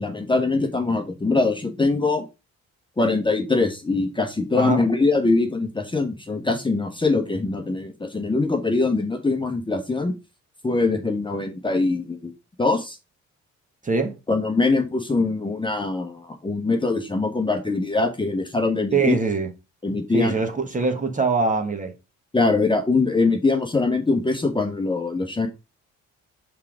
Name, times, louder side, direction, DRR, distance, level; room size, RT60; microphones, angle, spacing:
voice 1, 0.0-2.2 3.0-10.1 10.6-12.3 12.6-13.0 14.3-19.1 19.8-20.3 22.3-25.5, left 3 dB, 15° left, 1.1 m, -22 dB
voice 2, 13.8-14.2 18.9-19.5 20.1-21.9, right 4 dB, 25° right, 1.4 m, -23 dB
5.6 x 3.6 x 4.9 m
cardioid pair, 90°, 30 cm